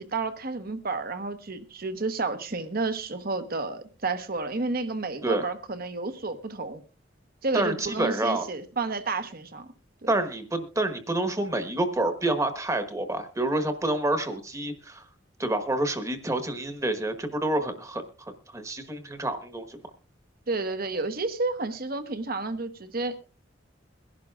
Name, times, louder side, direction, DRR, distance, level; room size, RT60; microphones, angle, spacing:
voice 1, 0.0-6.8 7.4-9.7 10.0-10.1 20.5-23.2, right 3 dB, 55° right, 10 dB, 1.1 m, -31 dB
voice 2, 7.5-8.4 10.1-15.0 15.4-19.8, right 1 dB, 15° right, 8 dB, 1.2 m, -28 dB
22.5 x 11.5 x 2.4 m, 0.35 s
head